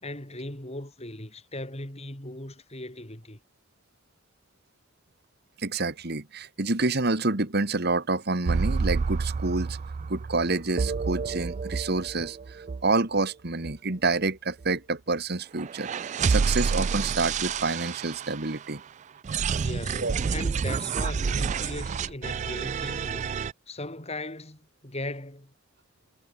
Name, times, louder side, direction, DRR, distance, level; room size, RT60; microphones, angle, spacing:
voice 1, 0.0-3.4 19.6-23.3 23.7-25.5, left 2 dB, 30° left, 4.7 m, -38 dB
voice 2, 5.6-9.8 10.1-15.9 16.3-18.8 20.0-20.1, right 3 dB, 50° right, 1.8 m, -28 dB
sound 1, 8.5-13.2 13.6-13.8 14.1-14.2 14.6-14.7 15.6-18.8 19.2-23.5, right 5 dB, 35° right, 0.3 m, -29 dB
head